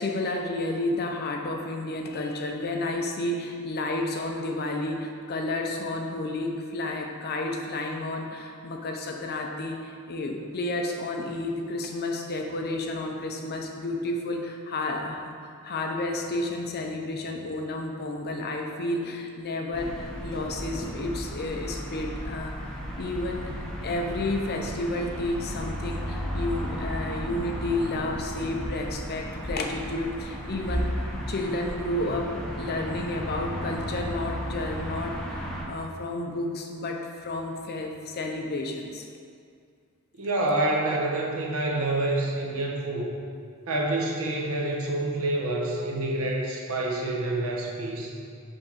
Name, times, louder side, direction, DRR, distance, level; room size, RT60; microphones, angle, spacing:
voice 1, 0.0-23.5 23.8-39.1, left 2 dB, 45° left, 2 dB, 0.5 m, -31 dB
sound 1, 19.7-35.6, equal, 5° left, 0.7 m, -34 dB
voice 2, 40.2-43.1 43.7-48.1, right 2 dB, 65° right, -1 dB, 0.9 m, -27 dB
5.3 x 3.5 x 5.7 m, 2.3 s
head